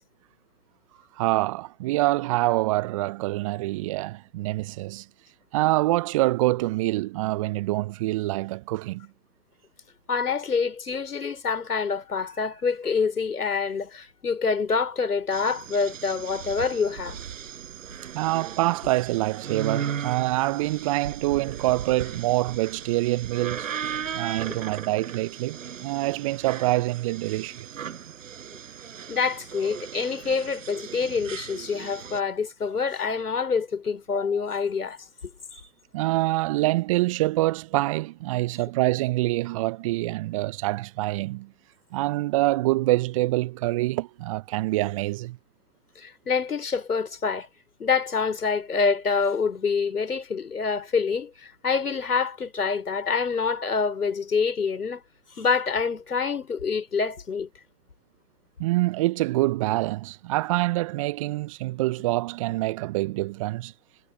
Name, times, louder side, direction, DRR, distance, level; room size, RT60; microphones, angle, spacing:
voice 1, 1.2-5.1 5.5-9.1 18.1-23.7 24.1-27.7 35.9-41.5 41.9-45.4 58.6-63.7, right 19 dB, 20° right, 0.9 m, -25 dB
voice 2, 10.1-17.2 24.5-24.6 26.6-26.8 29.1-35.1 35.5-35.6 46.0-47.5 47.8-55.0 55.3-57.5, left 5 dB, 70° left, 4.8 m, -26 dB
sound 1, 15.3-32.2, right 8 dB, 55° right, 6.1 m, -37 dB
figure-of-eight pair, 130°, 47 cm